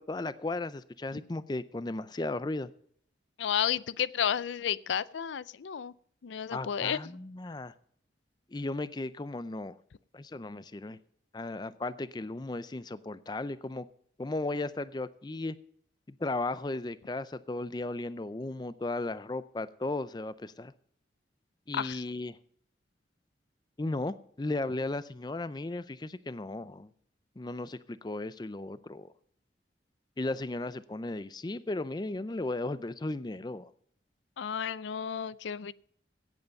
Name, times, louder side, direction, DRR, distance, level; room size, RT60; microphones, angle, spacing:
voice 1, 0.0-2.7 6.5-7.7 8.5-9.8 10.1-11.0 11.3-13.9 14.2-15.6 16.1-20.7 21.7-22.4 23.8-26.9 27.4-29.1 30.2-33.7, left 2 dB, 20° left, 0.4 m, -35 dB
voice 2, 3.4-5.9 6.2-7.0 21.7-22.0 34.4-35.7, left 8 dB, 80° left, 0.4 m, -32 dB
16.5 x 8.0 x 5.3 m
head